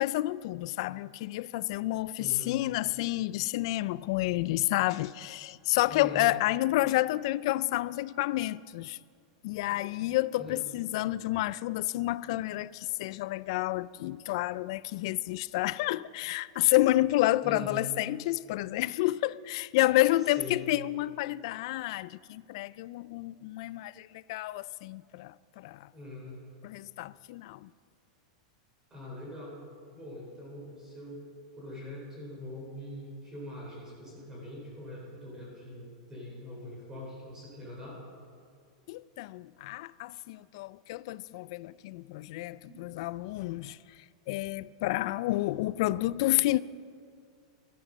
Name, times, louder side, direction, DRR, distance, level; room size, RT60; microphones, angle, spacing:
voice 1, 0.0-9.0 9.4-25.9 26.6-27.7 38.9-43.8 44.3-46.6, left 17 dB, 55° left, 0.3 m, -30 dB
voice 2, 2.2-2.6 5.9-6.3 10.4-10.6 17.4-17.8 20.4-20.6 25.9-26.4 28.9-29.6 29.9-31.2 31.6-38.0 42.6-42.8, left 1 dB, 15° right, 3.9 m, -43 dB
13.5 x 12.0 x 6.3 m
supercardioid pair, 155°, 3 cm